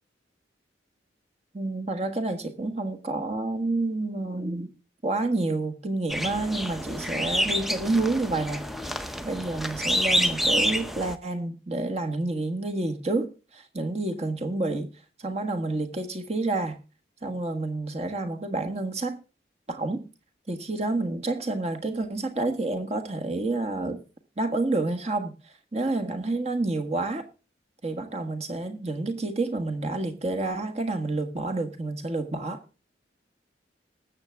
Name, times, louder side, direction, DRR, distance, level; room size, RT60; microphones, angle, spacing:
voice 1, 1.5-4.7 5.0-8.6 9.0-14.9 15.2-16.8 17.2-19.2 19.7-20.1 20.5-24.0 24.4-25.3 25.7-27.2 27.8-32.6, right 2 dB, 35° right, 1.5 m, -29 dB
sound 1, 6.1-11.1, equal, ahead, 0.7 m, -28 dB
19.5 x 7.6 x 3.5 m
head